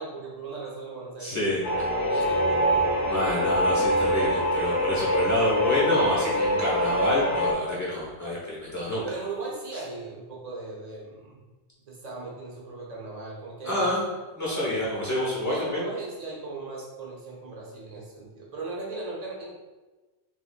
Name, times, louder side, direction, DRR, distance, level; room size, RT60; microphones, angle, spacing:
voice 1, 0.0-1.5 1.9-3.0 4.9-5.3 9.0-11.4 11.8-14.0 15.5-19.8, right 3 dB, 40° right, -4 dB, 0.8 m, -38 dB
voice 2, 1.2-2.2 3.1-9.1 13.6-14.1 14.4-15.8, left 1 dB, 15° left, -7 dB, 1.0 m, -28 dB
sound 1, 1.6-7.5, equal, 50° left, 0.7 m, -24 dB
3.9 x 3.0 x 2.4 m, 1.2 s
omnidirectional pair, 1.1 m